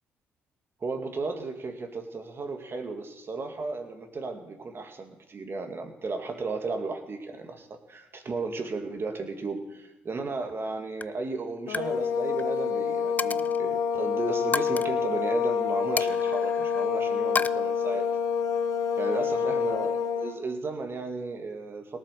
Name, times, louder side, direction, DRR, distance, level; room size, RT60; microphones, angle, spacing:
voice 1, 0.8-18.1 19.0-22.0, right 3 dB, 45° right, 5 dB, 2.4 m, -34 dB
Coin (dropping), 10.4-10.7 11.0-11.2 11.6-11.9 12.2-12.4 13.2-13.6 14.5-14.9 16.0-16.9 17.4-17.5, left 4 dB, 30° left, 0.5 m, -31 dB
sound 1, 11.7-20.4, left 6 dB, 65° left, 1.0 m, -27 dB
18.0 x 8.2 x 6.7 m, 1.0 s
hypercardioid pair, 55°, 6 cm